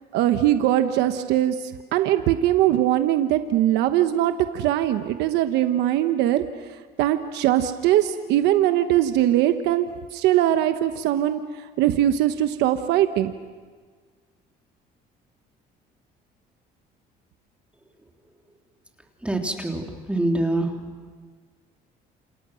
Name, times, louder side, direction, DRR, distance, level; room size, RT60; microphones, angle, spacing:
voice 1, 0.1-13.3, right 12 dB, 90° right, 8 dB, 1.1 m, -21 dB
voice 2, 19.2-20.8, right 1 dB, 5° right, 2 dB, 3.3 m, -25 dB
29.0 x 28.0 x 6.3 m, 1.5 s
cardioid pair, 110°, 17 cm